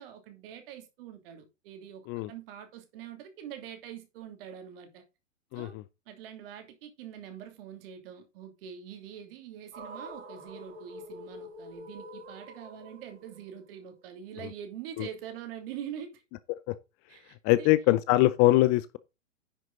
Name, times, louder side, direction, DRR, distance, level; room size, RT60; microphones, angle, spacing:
voice 1, 0.0-5.0 5.5-5.8 6.1-16.2 17.1-17.7, right 9 dB, 50° right, 2.9 m, -44 dB
voice 2, 5.5-5.8 15.0-15.1 16.7-16.8 17.4-19.0, left 17 dB, 30° left, 0.5 m, -23 dB
sound 1, 9.7-14.0, equal, 65° right, 4.6 m, -46 dB
10.0 x 6.1 x 4.0 m
hypercardioid pair, 115°, 36 cm